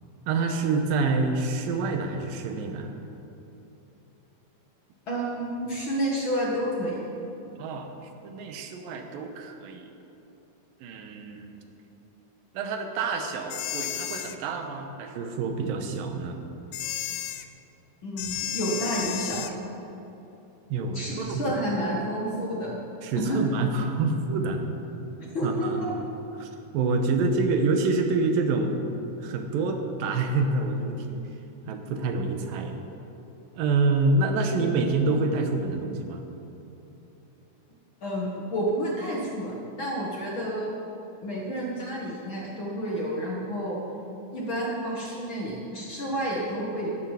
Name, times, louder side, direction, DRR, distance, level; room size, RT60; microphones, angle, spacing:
voice 1, 0.3-2.9 7.6-7.9 8.2-9.9 10.8-11.6 12.5-16.4 20.7-21.6 23.0-24.6 25.4-25.9 26.4-28.8 29.2-31.3 31.7-32.8 33.6-36.2, right 3 dB, 80° right, 5 dB, 2.7 m, -27 dB
voice 2, 5.1-7.0 18.0-19.5 20.9-22.8 23.2-23.4 25.2-25.9 38.0-40.7 41.2-43.8 44.3-46.9, right 1 dB, 45° left, -4 dB, 1.9 m, -30 dB
sound 1, 13.5-14.4 16.7-17.5 18.2-19.6, left 12 dB, 85° left, 1.7 m, -32 dB
12.0 x 11.0 x 7.4 m, 3.0 s
omnidirectional pair, 4.1 m